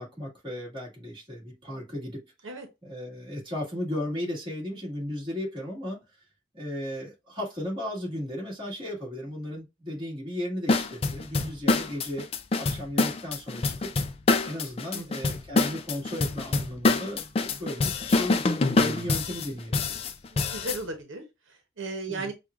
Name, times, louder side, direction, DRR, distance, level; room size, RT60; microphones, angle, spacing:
voice 1, 0.0-2.5 2.8-6.0 6.5-12.3 12.6-13.9 14.4-18.4 18.8-20.0 22.1-22.3, left 1 dB, 25° right, 1.9 m, -35 dB
sound 1, 10.7-20.8, left 3 dB, 30° left, 0.3 m, -26 dB
voice 2, 14.9-15.3 20.3-22.3, right 2 dB, 85° right, 0.9 m, -36 dB
6.0 x 2.4 x 2.5 m
head